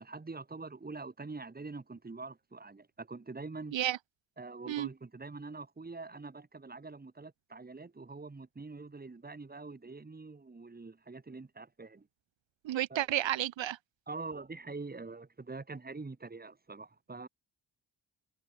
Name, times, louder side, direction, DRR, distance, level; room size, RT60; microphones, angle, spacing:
voice 1, 0.0-3.8 4.4-12.1 12.9-13.1 14.1-17.3, right 3 dB, 20° right, 1.6 m, -44 dB
voice 2, 12.6-13.8, right 12 dB, 75° right, 0.8 m, -31 dB
cardioid pair, 85°, 46 cm